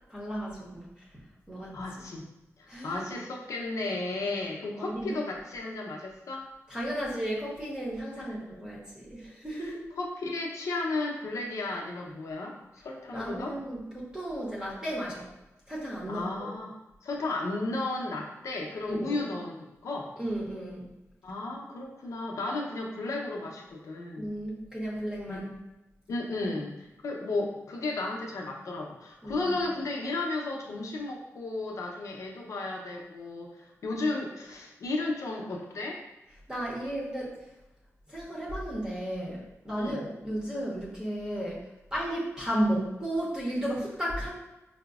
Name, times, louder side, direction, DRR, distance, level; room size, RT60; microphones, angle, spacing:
voice 1, 0.1-1.0 1.5-2.0 2.7-3.1 4.8-5.2 6.7-9.8 13.1-15.3 15.7-16.5 18.9-19.2 20.2-20.9 24.2-25.5 29.2-29.6 36.5-37.3 38.1-44.3, right 1 dB, 15° right, -5 dB, 0.8 m, -34 dB
voice 2, 1.7-2.3 2.6-6.5 8.2-8.3 9.6-9.7 10.0-13.5 16.1-16.7 17.0-20.1 21.2-24.3 25.3-25.4 26.1-36.0 39.8-40.0, left 2 dB, 75° left, -1 dB, 0.6 m, -34 dB
4.9 x 2.0 x 2.4 m, 1.0 s
wide cardioid pair, 100°, 5 cm